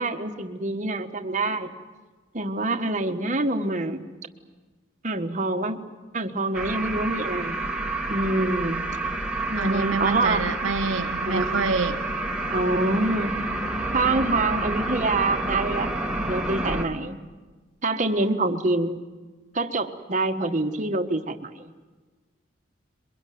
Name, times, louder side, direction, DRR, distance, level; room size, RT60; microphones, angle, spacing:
voice 1, 0.0-1.7 2.3-4.0 5.0-5.8 6.1-7.6 8.1-8.8 9.5-10.4 11.2-11.6 12.5-13.3 13.9-15.9 16.3-17.2 17.8-19.0 19.5-21.7, right 2 dB, 40° right, 1.5 m, -26 dB
sound 1, 6.5-16.8, right 2 dB, 5° right, 1.7 m, -29 dB
voice 2, 9.6-12.0, right 3 dB, 85° right, 0.9 m, -27 dB
23.0 x 23.0 x 9.4 m
head